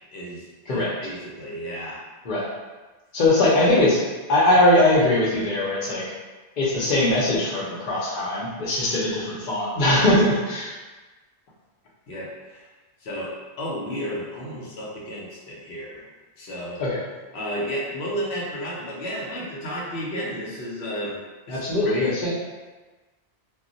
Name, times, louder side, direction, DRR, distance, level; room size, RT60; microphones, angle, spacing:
voice 1, 0.0-2.0 12.1-12.7 13.0-13.3 13.6-16.1 16.4-16.8 17.3-21.2 21.5-22.1, equal, 90° left, -4 dB, 1.0 m, -32 dB
voice 2, 3.1-4.0 4.3-6.0 6.6-10.7 16.8-17.0 21.5-22.3, left 1 dB, 50° left, -6 dB, 0.8 m, -21 dB
2.3 x 2.1 x 3.8 m, 1.2 s
omnidirectional pair, 1.1 m